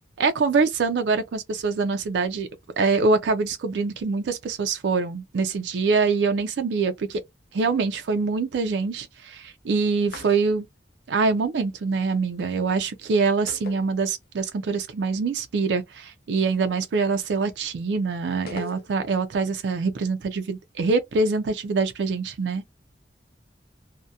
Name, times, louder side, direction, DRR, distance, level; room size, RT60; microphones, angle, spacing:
voice 1, 0.2-2.5 2.8-7.2 7.5-10.6 11.1-22.6, right 4 dB, 80° right, 0.4 m, -24 dB
sound 1, 10.0-10.8 13.5-14.5 14.8-14.9 18.5-19.3, left 3 dB, 60° left, 0.6 m, -41 dB
2.7 x 2.1 x 2.3 m
head